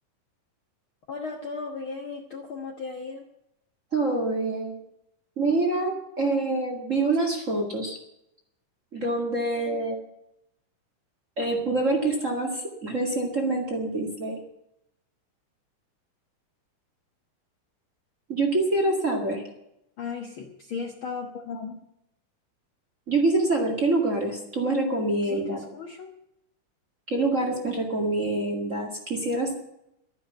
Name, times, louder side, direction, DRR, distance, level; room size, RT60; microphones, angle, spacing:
voice 1, 1.1-3.3 20.0-21.8 25.3-26.1, left 4 dB, 55° left, 3 dB, 1.5 m, -36 dB
voice 2, 3.9-4.8 5.4-8.0 8.9-10.0 11.4-14.4 18.3-19.4 23.1-25.6 27.1-29.5, right 2 dB, 30° right, 1 dB, 2.0 m, -26 dB
12.5 x 10.5 x 7.9 m, 0.81 s
omnidirectional pair, 3.7 m